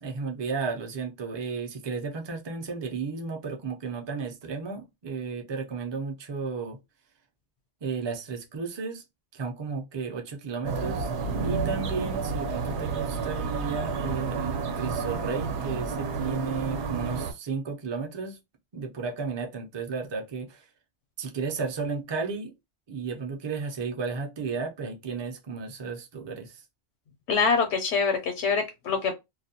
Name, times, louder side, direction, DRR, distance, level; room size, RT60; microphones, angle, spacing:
voice 1, 0.0-6.8 7.8-9.0 9.3-11.1 11.4-18.4 18.7-20.6 21.2-22.5 22.9-26.6, right 5 dB, 40° right, 0.4 m, -33 dB
sound 1, 10.6-17.3, right 4 dB, 80° right, 0.9 m, -30 dB
voice 2, 27.3-29.1, left 5 dB, 80° left, 0.9 m, -25 dB
2.3 x 2.1 x 2.6 m
omnidirectional pair, 1.2 m